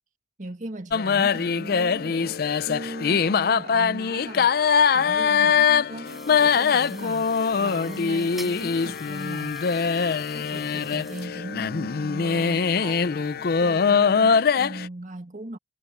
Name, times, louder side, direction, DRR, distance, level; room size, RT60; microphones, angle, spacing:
voice 1, 0.4-9.7 10.3-15.6, right 1 dB, 45° right, 1.7 m, -39 dB
sound 1, 0.9-14.9, left 6 dB, 60° left, 0.5 m, -22 dB
sound 2, 6.0-11.3, equal, ahead, 4.9 m, -47 dB
head